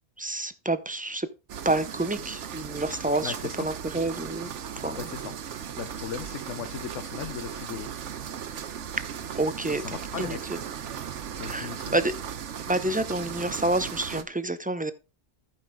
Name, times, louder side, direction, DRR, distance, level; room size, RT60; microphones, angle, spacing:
voice 1, 0.2-1.3 1.6-4.5 4.8-5.0 9.4-10.6 11.4-12.1 12.7-14.9, right 2 dB, 15° right, 0.3 m, -28 dB
sound 1, 1.5-14.2, right 8 dB, 85° right, 1.2 m, -37 dB
voice 2, 3.2-3.7 4.9-5.4 5.8-7.9 9.7-10.5 11.4-11.9, left 8 dB, 85° left, 1.1 m, -37 dB
14.0 x 5.5 x 3.6 m
omnidirectional pair, 1.2 m